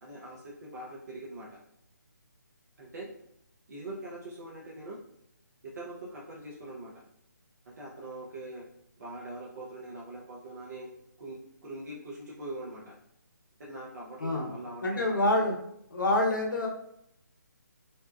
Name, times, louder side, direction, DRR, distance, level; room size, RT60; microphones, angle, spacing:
voice 1, 0.0-1.5 2.8-3.1 3.7-5.0 5.7-6.9 7.7-8.6 9.0-10.9 11.2-12.9 13.6-15.3, right 2 dB, 55° right, -5 dB, 0.7 m, -42 dB
voice 2, 14.8-15.6 15.9-16.7, left 1 dB, 80° left, 2 dB, 0.7 m, -26 dB
2.6 x 2.2 x 2.3 m, 0.74 s
figure-of-eight pair, 155°, 10 cm